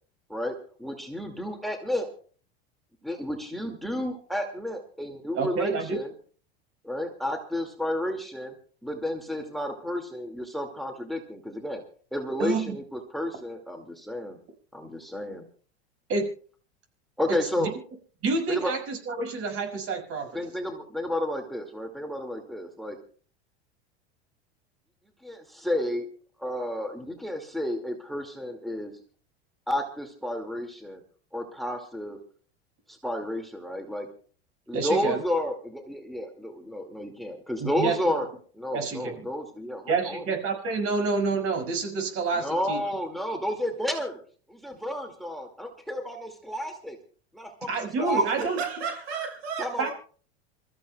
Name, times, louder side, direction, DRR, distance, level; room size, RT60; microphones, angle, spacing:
voice 1, 0.8-2.1 3.0-6.1 6.8-8.5 8.8-11.8 12.1-14.4 14.7-15.5 17.2-17.7 18.5-18.7 20.3-23.0 25.2-26.1 26.4-28.9 29.7-31.0 31.3-32.2 32.9-34.1 34.7-38.3 38.6-40.2 42.3-44.2 44.5-47.0 47.3-48.5 49.6-49.9, left 1 dB, ahead, 2.3 m, -31 dB
voice 2, 5.4-6.0 12.4-12.8 16.1-16.3 17.3-17.7 18.2-20.3 34.7-35.2 37.6-38.1 38.7-39.3 39.9-42.8 47.7-48.6 49.8-49.9, right 4 dB, 45° right, 6.0 m, -28 dB
voice 3, 48.2-49.9, right 6 dB, 75° right, 4.7 m, -34 dB
27.5 x 14.5 x 2.3 m
hypercardioid pair, 95°, 32 cm